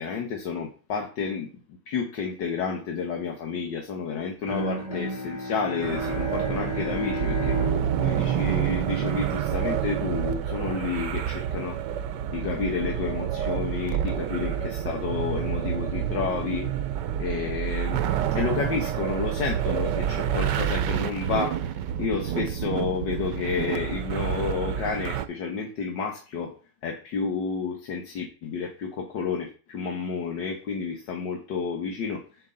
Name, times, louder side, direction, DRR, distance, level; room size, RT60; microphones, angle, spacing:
voice 1, 0.0-1.5 1.9-7.6 8.0-11.8 12.3-16.7 17.2-18.0 18.3-21.6 22.0-26.5 26.8-32.2, left 5 dB, 80° left, 1 dB, 1.9 m, -30 dB
Bowed string instrument, 4.4-9.5, left 1 dB, 45° left, 3.7 m, -33 dB
sound 1, 5.8-25.3, right 10 dB, 80° right, 1.3 m, -28 dB
7.7 x 7.6 x 3.9 m, 0.36 s
omnidirectional pair, 1.9 m